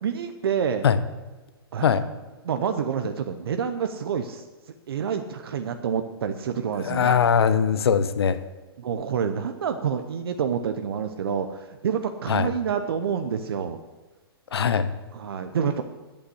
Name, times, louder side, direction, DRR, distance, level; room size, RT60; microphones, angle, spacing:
voice 1, 0.0-0.8 1.7-2.0 2.4-4.4 4.9-7.2 8.8-13.8 15.1-15.8, right 7 dB, 70° right, 7 dB, 0.8 m, -28 dB
voice 2, 6.8-8.4 12.3-12.5 14.5-14.9, left 7 dB, 75° left, 13 dB, 0.9 m, -21 dB
8.8 x 8.6 x 7.9 m, 1.2 s
hypercardioid pair, 135°, 13 cm